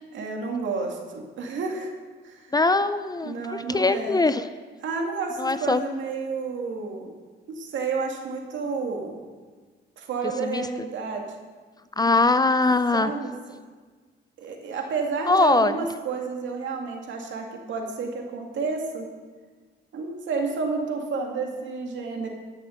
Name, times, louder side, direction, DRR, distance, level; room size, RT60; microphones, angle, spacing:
voice 1, 0.1-1.9 2.2-2.5 3.2-4.2 4.8-7.1 7.5-9.2 10.0-11.2 12.9-13.3 14.4-19.1 19.9-22.3, right 4 dB, 70° right, 1 dB, 2.2 m, -30 dB
voice 2, 2.5-4.5 5.4-5.8 10.4-10.7 12.0-13.1 15.3-15.7, left 3 dB, 20° left, 12 dB, 0.5 m, -21 dB
12.5 x 6.7 x 6.4 m, 1.4 s
cardioid pair, 90°, 20 cm